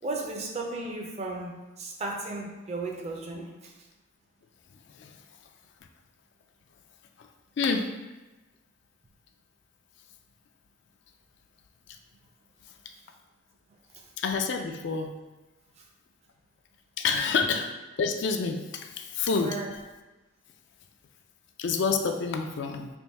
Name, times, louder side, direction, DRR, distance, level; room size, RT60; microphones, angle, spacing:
voice 1, 0.0-3.7 13.9-14.1 15.8-15.9 19.4-19.7, right 2 dB, 30° right, 1 dB, 0.4 m, -35 dB
voice 2, 4.9-5.2 7.2-7.3 7.6-7.9 14.2-15.1 17.0-17.7 18.0-19.6 21.6-22.9, left 5 dB, 55° left, 5 dB, 0.3 m, -28 dB
3.5 x 2.6 x 4.1 m, 1.1 s
head